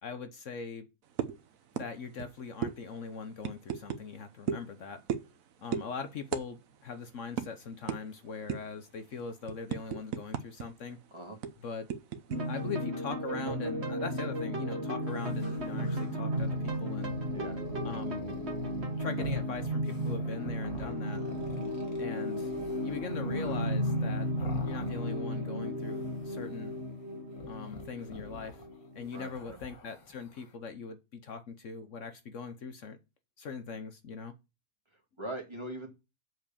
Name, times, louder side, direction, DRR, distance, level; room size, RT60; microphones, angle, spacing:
voice 1, 0.0-0.9 1.7-5.0 5.6-11.0 11.6-11.9 12.5-17.1 17.8-18.2 19.0-21.2 22.0-22.5 22.8-24.3 24.6-26.7 27.5-28.6 28.9-33.0 33.4-34.3, left 5 dB, 60° left, 9 dB, 1.2 m, -41 dB
sound 1, 1.2-1.4 1.8-1.9 2.2-2.3 2.6-2.8 3.4-4.0 4.5-4.7 5.1-5.4 5.7-5.9 6.3-6.5 6.7-6.9 7.4-7.5 7.9-8.0 8.5-8.8 9.2-10.7 10.9-11.0 11.4-12.4, right 8 dB, 70° right, 1.2 m, -34 dB
sound 2, 12.3-29.2, equal, 50° right, 1.9 m, -34 dB
sound 3, 15.1-25.5 25.8-26.8 27.3-30.5, left 4 dB, 90° left, 2.1 m, -49 dB
voice 2, 29.1-29.6 34.9-35.9, right 1 dB, 20° right, 1 dB, 2.2 m, -41 dB
7.6 x 4.7 x 7.0 m, 0.27 s
omnidirectional pair, 1.5 m